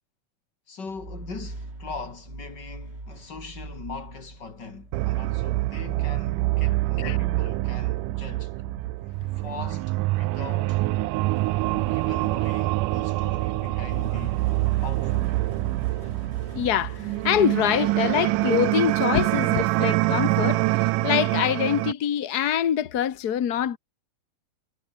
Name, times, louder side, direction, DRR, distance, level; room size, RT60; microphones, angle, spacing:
voice 1, 0.7-8.5 9.3-10.8 11.7-14.4 14.8-15.4, left 4 dB, 35° left, 3.7 m, -41 dB
sound 1, 0.9-19.0, right 2 dB, 20° right, 4.6 m, -44 dB
sound 2, 4.9-21.9, right 19 dB, 90° right, 2.2 m, -25 dB
voice 2, 16.5-23.8, left 10 dB, 80° left, 0.8 m, -25 dB
omnidirectional pair, 3.6 m